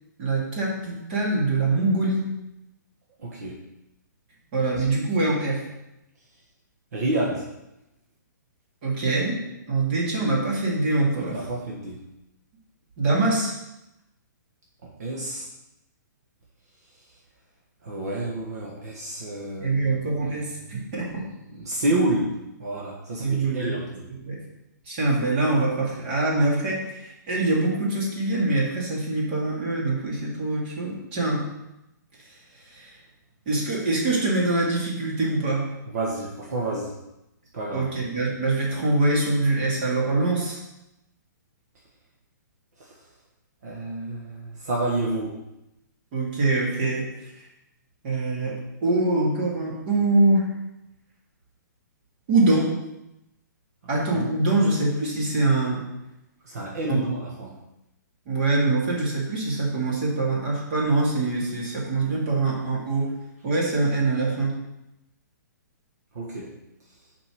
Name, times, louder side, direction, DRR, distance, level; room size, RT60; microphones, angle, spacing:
voice 1, 0.2-2.2 4.5-5.6 8.8-9.4 9.7-11.4 13.0-13.5 19.6-21.2 23.2-23.7 24.1-24.4 24.9-31.5 32.7-32.9 33.5-35.7 37.7-40.6 46.1-47.1 47.3-47.4 48.0-50.4 52.3-52.7 53.9-55.8 56.9-57.0 58.3-63.1 63.4-64.6, right 2 dB, 30° right, -4 dB, 2.4 m, -24 dB
voice 2, 3.2-3.6 4.8-4.9 6.9-7.5 11.1-12.0 14.8-15.5 17.8-20.0 20.8-21.1 21.5-24.1 35.9-36.9 37.5-37.9 42.8-42.9 43.6-45.4 54.1-54.3 56.4-57.6 66.1-66.5, right 1 dB, 55° right, -3 dB, 1.5 m, -29 dB
5.8 x 5.3 x 6.2 m, 0.91 s
hypercardioid pair, 170°, 10 cm